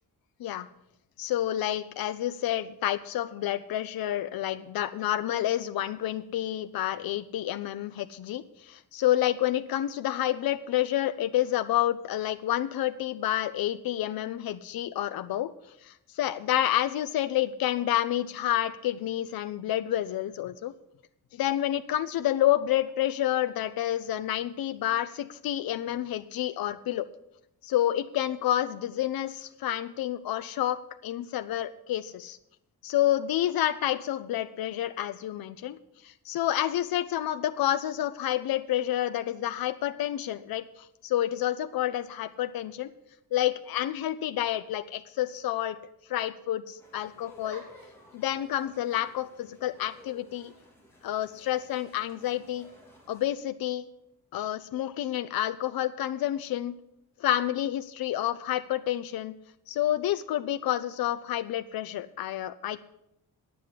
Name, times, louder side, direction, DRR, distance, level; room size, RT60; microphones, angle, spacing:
voice 1, 1.2-15.5 15.8-20.7 21.4-27.1 27.6-32.4 32.8-35.8 36.0-42.9 43.3-45.8 46.1-47.6 48.1-50.5 51.0-52.7 53.1-53.9 54.3-56.7 57.2-59.3 59.7-62.8, left 12 dB, 80° left, 10 dB, 0.6 m, -29 dB
sound 1, 46.8-53.3, left 1 dB, 5° left, 3.1 m, -54 dB
10.0 x 7.8 x 8.3 m, 0.80 s
wide cardioid pair, 160°, 36 cm